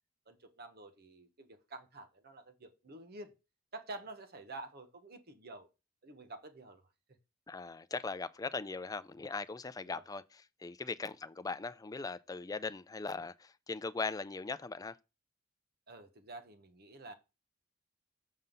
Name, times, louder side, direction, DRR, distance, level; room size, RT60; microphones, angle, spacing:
voice 1, 0.3-3.3 3.7-5.7 6.0-6.8 7.1-7.2 9.8-10.0 15.9-17.1, right 2 dB, 50° right, 1.1 m, -49 dB
voice 2, 7.5-10.2 10.6-15.0, left 4 dB, 20° left, 0.4 m, -39 dB
7.4 x 5.4 x 3.8 m
head